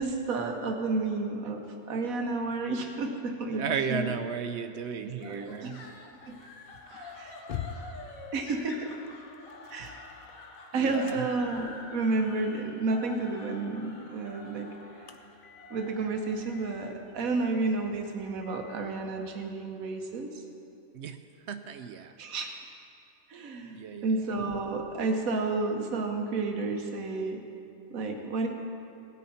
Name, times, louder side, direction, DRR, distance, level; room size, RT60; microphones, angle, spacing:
voice 1, 0.0-4.1 5.0-5.7 6.3-6.4 7.2-7.3 8.3-8.9 9.7-10.0 10.7-14.7 15.7-20.4 22.2-22.6 23.3-27.4 27.9-28.5, right 3 dB, 90° right, 4 dB, 1.4 m, -31 dB
voice 2, 3.5-5.8 6.9-7.3 10.7-11.3 20.9-21.2 21.5-22.2 23.7-24.2, right 7 dB, 65° right, 9 dB, 0.8 m, -35 dB
sound 1, 4.8-19.4, left 7 dB, 55° left, 0.6 m, -49 dB
sound 2, 5.2-18.4, left 3 dB, 90° left, 1.7 m, -48 dB
18.0 x 8.4 x 4.2 m, 2.6 s
omnidirectional pair, 1.4 m